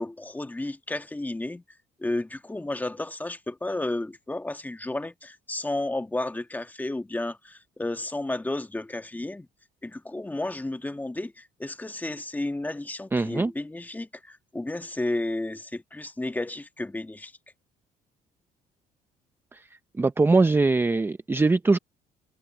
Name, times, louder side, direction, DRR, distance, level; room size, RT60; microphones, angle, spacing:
voice 1, 0.0-1.6 2.0-9.5 9.8-17.3, left 2 dB, 10° left, 1.6 m, -32 dB
voice 2, 13.1-13.5 19.5-19.6 20.0-21.8, right 3 dB, 15° right, 0.6 m, -22 dB
cardioid pair, 110°, 17 cm